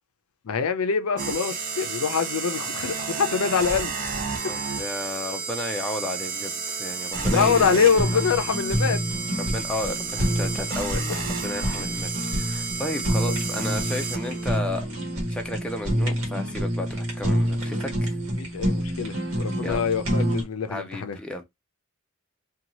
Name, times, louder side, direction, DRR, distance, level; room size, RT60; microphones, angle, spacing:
voice 1, 0.5-3.9 7.3-9.0 13.3-13.4 18.4-21.2, left 6 dB, 75° left, 0.5 m, -24 dB
sound 1, 1.2-14.6, right 5 dB, 40° right, 0.6 m, -32 dB
voice 2, 4.4-7.8 8.1-8.2 9.4-14.9 15.3-18.2 19.6-19.9 20.7-21.4, left 1 dB, 5° left, 0.4 m, -33 dB
Fire, 7.1-20.4, equal, 70° right, 1.2 m, -27 dB
2.7 x 2.3 x 2.9 m
head